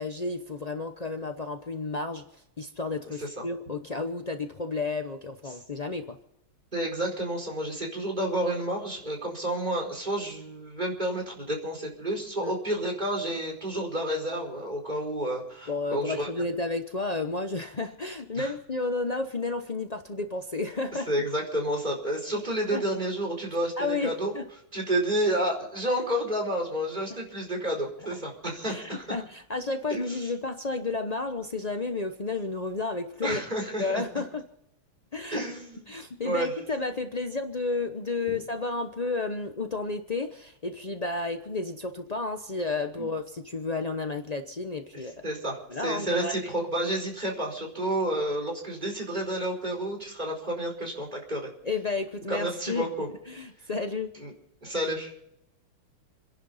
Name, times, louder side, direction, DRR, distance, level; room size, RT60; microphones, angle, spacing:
voice 1, 0.0-6.2 12.4-12.5 15.7-21.1 22.7-22.8 23.8-24.4 28.1-28.2 28.7-33.4 33.8-34.4 35.1-35.4 35.9-45.1 45.7-46.5 51.6-52.9 53.3-54.1, left 3 dB, 60° left, 6 dB, 0.4 m, -32 dB
voice 2, 6.7-16.3 18.3-18.5 21.1-24.3 24.7-29.0 29.9-30.0 33.2-34.0 35.3-35.8 36.2-36.5 38.3-38.4 43.0-43.1 45.2-51.5 52.3-53.1 54.2-54.3 54.6-55.1, right 1 dB, 20° right, 0 dB, 4.8 m, -30 dB
29.0 x 11.0 x 4.2 m, 0.79 s
omnidirectional pair, 2.4 m